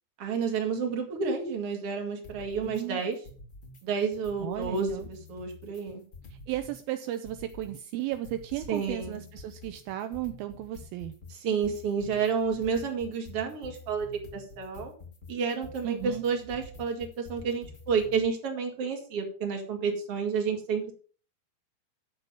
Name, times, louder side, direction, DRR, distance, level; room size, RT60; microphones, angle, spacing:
voice 1, 0.2-3.2 3.8-4.9 5.3-6.0 8.7-9.2 11.4-14.9 15.3-20.9, right 5 dB, 40° right, 2 dB, 2.5 m, -30 dB
sound 1, 2.2-2.8 3.1-3.8 4.1-6.8 7.1-18.2, left 2 dB, 30° left, 1.7 m, -48 dB
voice 2, 2.6-3.0 4.4-5.1 6.3-11.2 15.8-16.2, right 13 dB, 85° right, 8 dB, 2.2 m, -35 dB
10.5 x 7.0 x 5.2 m, 0.40 s
omnidirectional pair, 4.9 m